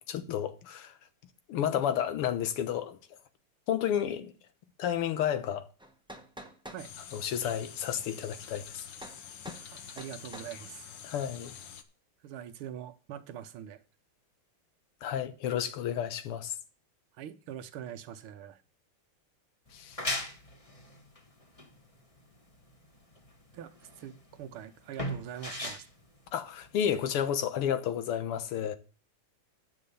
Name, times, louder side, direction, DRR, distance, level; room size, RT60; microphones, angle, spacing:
voice 1, 0.1-1.0 1.5-3.0 3.7-4.3 4.8-5.7 7.1-8.9 11.0-11.5 15.0-16.5 19.7-20.0 26.3-28.8, left 9 dB, 90° left, 2.0 m, -31 dB
sound 1, 5.8-6.9 9.0-9.2 9.5-9.7 10.0-10.5, right 1 dB, 5° right, 0.5 m, -46 dB
sound 2, 6.8-11.8, left 8 dB, 65° left, 1.6 m, -47 dB
voice 2, 9.5-10.9 12.2-13.8 17.2-18.6 23.5-23.7 24.0-25.8, right 10 dB, 80° right, 1.7 m, -43 dB
sound 3, 19.7-27.1, left 1 dB, 20° left, 1.1 m, -39 dB
9.8 x 6.4 x 6.8 m
omnidirectional pair, 2.4 m